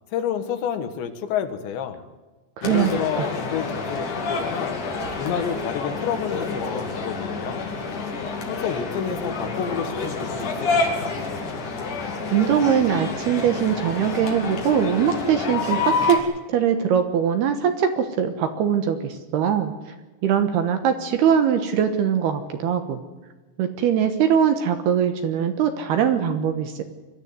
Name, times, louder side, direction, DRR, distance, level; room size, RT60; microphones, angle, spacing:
voice 1, 0.1-2.0 2.6-4.8 5.2-7.7 8.5-11.2, left 8 dB, 70° left, 8 dB, 3.6 m, -29 dB
sound 1, 2.6-16.2, left 4 dB, 45° left, 3.7 m, -28 dB
voice 2, 2.6-2.9 3.2-3.3 12.3-16.2 16.5-19.7 20.2-23.0 23.6-26.8, right 8 dB, 70° right, 7 dB, 2.8 m, -21 dB
23.0 x 13.5 x 9.6 m, 1.2 s
omnidirectional pair, 5.6 m